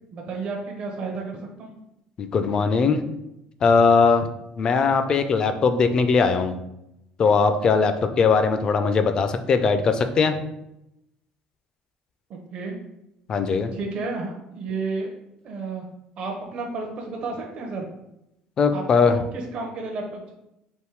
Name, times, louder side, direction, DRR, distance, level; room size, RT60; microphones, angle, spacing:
voice 1, 0.1-1.7 12.3-12.8 13.7-15.1 15.4-15.8 16.2-17.9 18.7-20.3, right 3 dB, 45° right, 0 dB, 0.6 m, -32 dB
voice 2, 2.2-3.0 3.6-4.3 4.6-6.6 7.2-10.4 13.3-13.7 18.6-19.2, left 5 dB, 30° left, 9 dB, 0.4 m, -20 dB
3.5 x 2.6 x 4.6 m, 0.86 s
cardioid pair, 150°, 3 cm